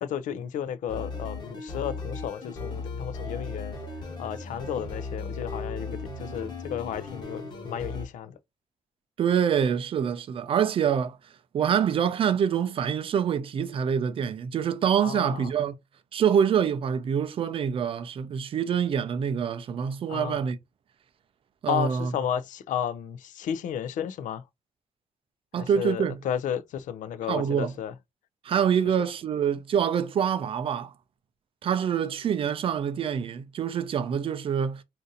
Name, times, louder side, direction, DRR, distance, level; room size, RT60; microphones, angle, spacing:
voice 1, 0.0-3.8 4.2-8.3 15.0-15.5 20.1-20.4 21.7-24.4 25.6-27.9 29.0-29.1, left 9 dB, 75° left, 0.4 m, -33 dB
sound 1, 0.9-8.1, left 3 dB, 35° left, 1.1 m, -36 dB
voice 2, 9.2-11.2 11.5-15.7 16.1-20.6 21.6-22.1 25.5-26.1 27.3-27.7 28.4-30.9 31.6-34.8, right 8 dB, 45° right, 0.4 m, -26 dB
2.6 x 2.5 x 3.8 m
wide cardioid pair, 160°, 13 cm